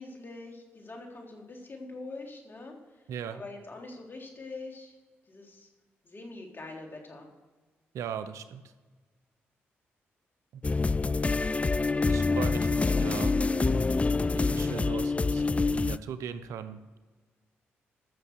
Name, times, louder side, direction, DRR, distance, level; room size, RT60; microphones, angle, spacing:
voice 1, 0.0-3.0 3.3-4.9 5.3-5.7 6.0-7.3, left 2 dB, 40° left, 1 dB, 3.5 m, -44 dB
voice 2, 3.1-3.4 7.9-8.7 10.5-10.6 12.1-13.4 14.3-16.8, right 8 dB, 75° right, 11 dB, 0.7 m, -38 dB
sound 1, 10.6-16.0, left 3 dB, 25° left, 0.3 m, -26 dB
14.0 x 6.8 x 6.6 m, 1.3 s
hypercardioid pair, 45°, 5 cm